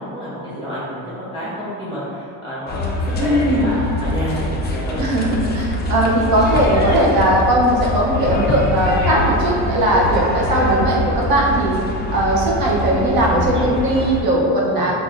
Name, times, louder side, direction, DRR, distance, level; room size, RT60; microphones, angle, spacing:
voice 1, 0.0-5.0 13.5-13.7 14.7-14.9, equal, 10° right, -10 dB, 1.0 m, -29 dB
sound 1, 2.7-14.2, left 2 dB, 25° left, 0.4 m, -24 dB
voice 2, 3.2-3.7 5.0-11.8 12.1-14.9, right 1 dB, 55° right, -3 dB, 0.9 m, -18 dB
5.6 x 2.5 x 2.5 m, 2.4 s
cardioid pair, 140°, 43 cm